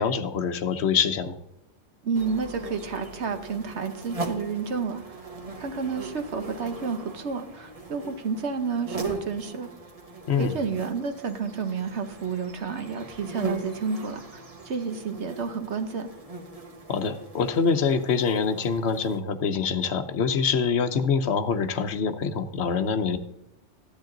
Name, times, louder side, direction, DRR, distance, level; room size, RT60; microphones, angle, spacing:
voice 1, 0.0-1.4 10.3-10.5 16.9-23.2, left 6 dB, 65° left, 10 dB, 1.1 m, -25 dB
voice 2, 2.0-5.0 5.6-9.7 10.4-16.1, right 5 dB, 65° right, 8 dB, 1.3 m, -30 dB
sound 1, 2.1-19.2, right 3 dB, 30° right, 1.3 m, -39 dB
13.5 x 10.5 x 3.9 m, 0.85 s
omnidirectional pair, 1.2 m